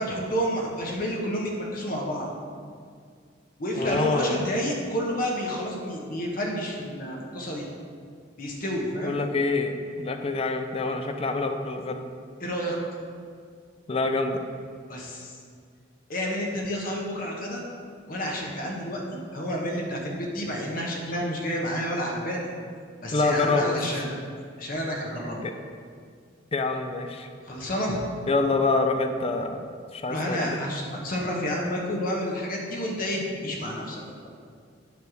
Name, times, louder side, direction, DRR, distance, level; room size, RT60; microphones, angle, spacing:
voice 1, 0.0-2.3 3.6-7.6 8.4-9.2 12.4-12.8 14.9-15.4 16.1-17.6 18.1-19.0 19.3-22.5 23.0-24.2 24.6-25.4 27.4-28.0 30.1-34.0, equal, 50° left, -1 dB, 1.3 m, -30 dB
voice 2, 3.7-4.4 9.0-12.0 13.9-14.4 23.1-24.0 25.4-25.5 26.5-27.3 28.3-30.6, left 3 dB, 30° left, 6 dB, 0.5 m, -26 dB
9.4 x 3.4 x 6.2 m, 2.1 s
head